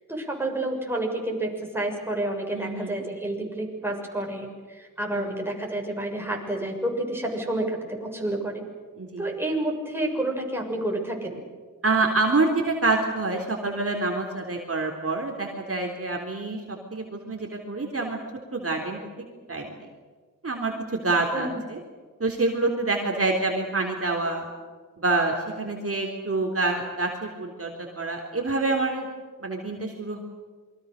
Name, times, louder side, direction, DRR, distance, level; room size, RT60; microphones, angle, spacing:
voice 1, 0.1-8.6 9.2-11.4 21.3-21.6, right 1 dB, 5° right, 0 dB, 6.7 m, -29 dB
voice 2, 2.5-3.0 5.1-5.3 9.0-9.3 11.8-18.2 18.5-19.0 19.5-19.8 20.4-21.8 22.2-24.5 25.0-29.1 29.4-30.2, right 3 dB, 45° right, 1 dB, 3.7 m, -27 dB
28.0 x 23.5 x 6.7 m, 1.5 s
wide cardioid pair, 80°, 33 cm